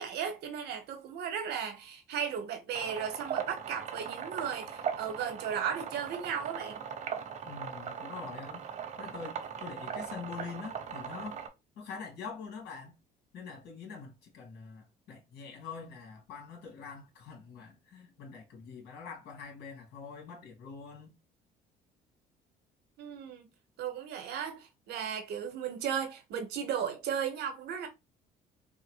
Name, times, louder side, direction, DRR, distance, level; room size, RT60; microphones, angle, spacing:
voice 1, 0.0-6.8 23.0-23.5 23.8-27.9, right 8 dB, 75° right, 1.0 m, -35 dB
sound 1, 2.7-11.5, right 7 dB, 45° right, 0.7 m, -39 dB
voice 2, 7.5-8.7 9.0-11.4 11.8-13.0 13.3-21.2, left 5 dB, 70° left, 1.9 m, -45 dB
3.6 x 2.1 x 3.1 m
cardioid pair, 110°, 17 cm